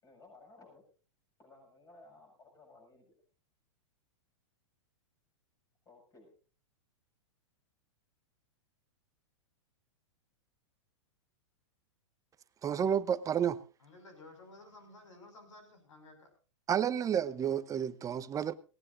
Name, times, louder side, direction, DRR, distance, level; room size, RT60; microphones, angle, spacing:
voice 1, 0.0-0.8 1.4-3.2 5.9-6.3, left 3 dB, 20° left, 7.3 m, -58 dB
voice 2, 12.6-13.6 16.7-18.5, right 8 dB, 20° right, 0.8 m, -30 dB
voice 3, 13.8-16.3, left 2 dB, 90° left, 5.7 m, -54 dB
18.5 x 18.0 x 2.6 m
hypercardioid pair, 120°, 16 cm